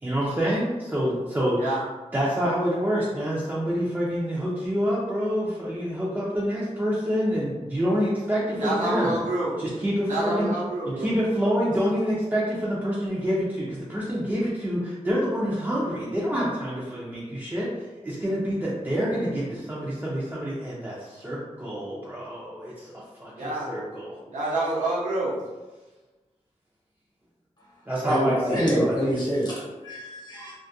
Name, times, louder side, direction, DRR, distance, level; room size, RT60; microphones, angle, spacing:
voice 1, 0.0-1.8 2.1-9.2 9.6-10.5 11.0-17.7 18.0-22.9 23.2-24.2 27.9-29.1, equal, 15° right, -8 dB, 0.4 m, -27 dB
voice 2, 8.6-9.6 10.1-11.1 23.4-23.7 24.3-25.4 30.3-30.4, right 2 dB, 75° right, -6 dB, 0.7 m, -27 dB
voice 3, 28.0-30.5, equal, 35° left, -5 dB, 0.8 m, -26 dB
2.3 x 2.1 x 2.6 m, 1.2 s
wide cardioid pair, 120°, 13 cm